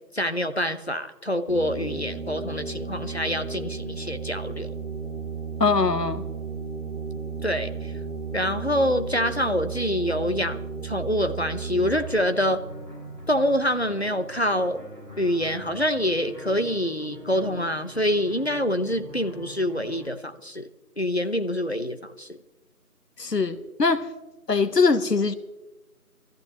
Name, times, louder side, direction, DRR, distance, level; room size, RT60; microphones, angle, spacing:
voice 1, 0.1-4.7 7.4-7.9 8.3-12.6 13.3-14.8 15.2-20.7 21.0-22.4, equal, 40° left, 9 dB, 0.9 m, -26 dB
sound 1, 1.5-12.0, right 5 dB, 45° right, 2.2 m, -34 dB
voice 2, 5.6-6.2 23.2-24.1 24.5-25.3, left 4 dB, 85° left, 11 dB, 1.3 m, -22 dB
sound 2, 11.8-20.1, right 1 dB, 5° right, 5.2 m, -43 dB
23.0 x 14.5 x 3.0 m, 1.0 s
figure-of-eight pair, 180°, 47 cm